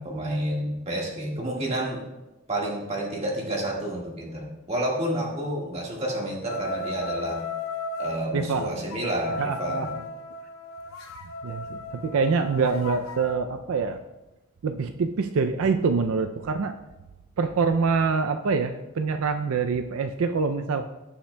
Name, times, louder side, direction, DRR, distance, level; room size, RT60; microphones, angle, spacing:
voice 1, 0.0-2.0 2.5-7.4 8.0-9.9, right 1 dB, 30° right, -2 dB, 1.6 m, -29 dB
sound 1, 6.5-8.2 8.9-13.4, left 2 dB, 80° left, 0.7 m, -35 dB
voice 2, 8.3-8.9 9.4-9.9 11.4-14.0 14.6-16.7 17.4-20.9, right 4 dB, 75° right, 7 dB, 0.4 m, -25 dB
16.5 x 5.7 x 2.2 m, 1.0 s
head